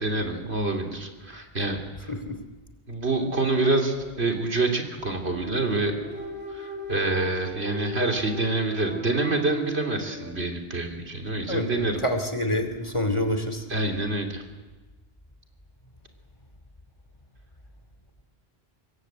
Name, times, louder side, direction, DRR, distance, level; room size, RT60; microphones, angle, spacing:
voice 1, 0.0-2.1 2.9-6.0 6.5-12.0 13.7-14.4, right 2 dB, 90° right, 2 dB, 3.5 m, -27 dB
sound 1, 3.2-10.5, right 2 dB, 10° right, 3.8 m, -39 dB
voice 2, 11.5-13.6, left 1 dB, 30° left, 6 dB, 2.6 m, -27 dB
25.5 x 22.0 x 8.1 m, 1.3 s
omnidirectional pair, 1.1 m